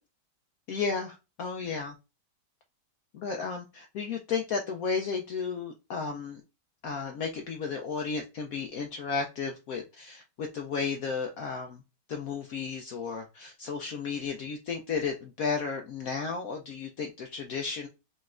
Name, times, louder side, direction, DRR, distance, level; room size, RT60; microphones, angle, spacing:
voice 1, 0.7-1.9 3.1-6.4 6.8-11.8 12.1-17.9, left 5 dB, 65° left, 4 dB, 0.9 m, -33 dB
5.2 x 3.1 x 2.4 m, 0.28 s
omnidirectional pair, 1.9 m